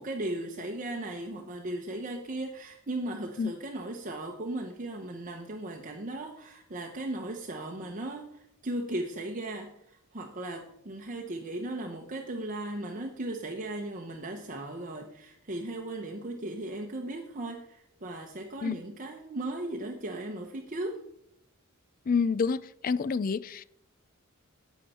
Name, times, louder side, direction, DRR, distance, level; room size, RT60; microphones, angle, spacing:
voice 1, 0.0-21.0, right 1 dB, 35° right, 0.9 m, -37 dB
voice 2, 22.1-23.6, left 5 dB, 40° left, 0.3 m, -28 dB
11.0 x 8.3 x 4.3 m
head